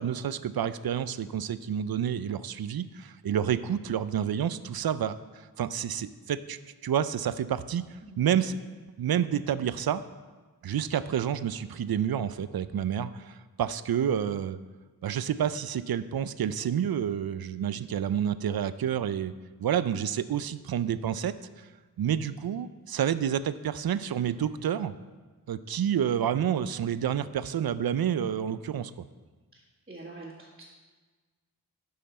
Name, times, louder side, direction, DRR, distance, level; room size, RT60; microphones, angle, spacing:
voice 1, 0.0-7.8 8.2-8.6 9.0-10.0 10.6-14.6 15.0-19.3 19.6-21.7 22.0-24.9 25.5-28.9, right 9 dB, 70° right, 14 dB, 0.5 m, -29 dB
voice 2, 29.5-30.6, right 2 dB, 25° right, -8 dB, 1.8 m, -46 dB
12.5 x 5.7 x 4.2 m, 1.4 s
wide cardioid pair, 90°, 38 cm